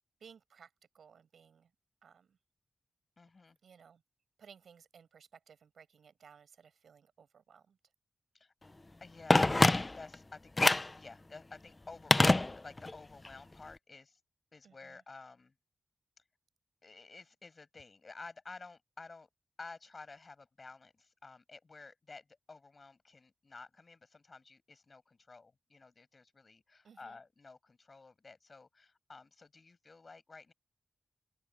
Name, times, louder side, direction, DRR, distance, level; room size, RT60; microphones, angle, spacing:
voice 1, 0.2-1.7 2.0-2.4 3.6-4.0 4.4-7.8 14.6-15.0 26.8-27.2, right 7 dB, 85° right, 6.9 m, -59 dB
voice 2, 3.2-3.6 8.3-8.5 9.0-14.2 14.5-15.5 16.8-19.3 19.6-30.5, left 3 dB, 50° left, 8.0 m, -52 dB
Telephone, 9.3-10.2 10.6-11.0 12.1-13.0 13.2-13.3, left 2 dB, 30° left, 0.9 m, -26 dB
open air
cardioid pair, 60°, 0 cm